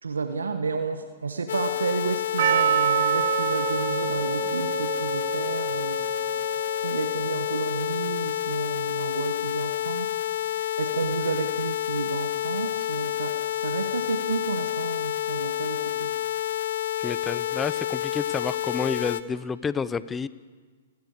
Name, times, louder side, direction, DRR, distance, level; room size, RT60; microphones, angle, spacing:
voice 1, 0.0-6.1 6.8-10.1 10.4-16.1, right 4 dB, 85° right, 8 dB, 1.5 m, -31 dB
sound 1, 1.5-19.2, left 12 dB, 65° left, 1.3 m, -29 dB
Percussion, 2.4-7.3, right 10 dB, 55° right, 1.1 m, -27 dB
voice 2, 17.0-20.3, left 5 dB, 15° left, 16 dB, 0.7 m, -30 dB
28.5 x 18.0 x 6.8 m, 1.5 s
hypercardioid pair, 120°, 0 cm